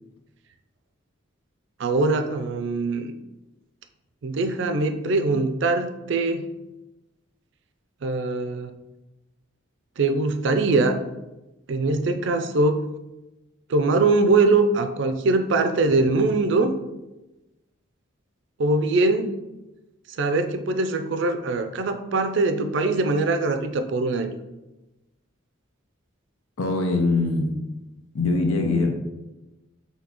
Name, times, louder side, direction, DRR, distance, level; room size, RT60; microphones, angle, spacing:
voice 1, 1.8-3.1 4.2-6.5 8.0-8.7 10.0-11.0 11.7-12.8 13.7-16.8 18.6-19.4 20.2-24.4, right 3 dB, 60° right, 7 dB, 0.4 m, -22 dB
voice 2, 26.6-27.6 28.1-28.9, left 3 dB, 90° left, 4 dB, 0.7 m, -22 dB
6.0 x 2.8 x 2.9 m, 1.0 s
head